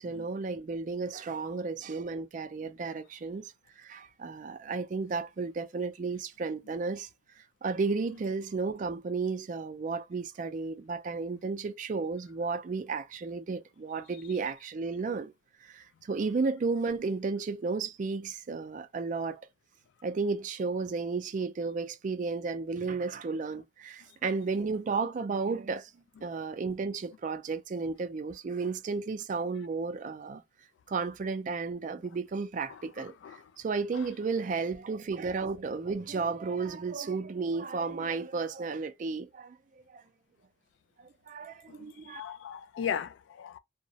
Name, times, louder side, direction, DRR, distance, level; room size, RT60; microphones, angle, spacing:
voice 1, 0.0-7.1 7.4-15.3 15.6-19.4 20.0-25.9 26.2-30.4 30.9-33.1 33.6-39.6 39.9-40.0 41.0-42.2, right 4 dB, 40° right, 0.3 m, -33 dB
voice 2, 32.7-33.4 41.7-43.6, left 8 dB, 80° left, 0.3 m, -38 dB
2.3 x 2.0 x 2.7 m
head